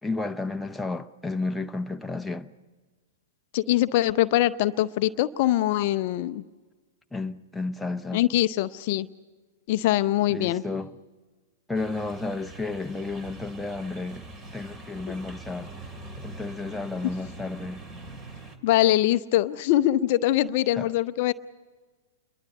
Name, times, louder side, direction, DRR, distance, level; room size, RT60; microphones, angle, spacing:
voice 1, 0.0-2.5 7.1-8.2 10.3-11.0 11.7-14.3 14.5-15.7 16.2-17.8 20.8-20.9, left 3 dB, 5° left, 0.8 m, -32 dB
voice 2, 3.5-6.4 8.1-9.1 9.7-10.6 18.6-21.3, left 14 dB, 45° left, 0.6 m, -23 dB
sound 1, 11.7-18.6, right 2 dB, 25° right, 2.6 m, -43 dB
28.0 x 22.5 x 5.3 m
figure-of-eight pair, 105°, 0 cm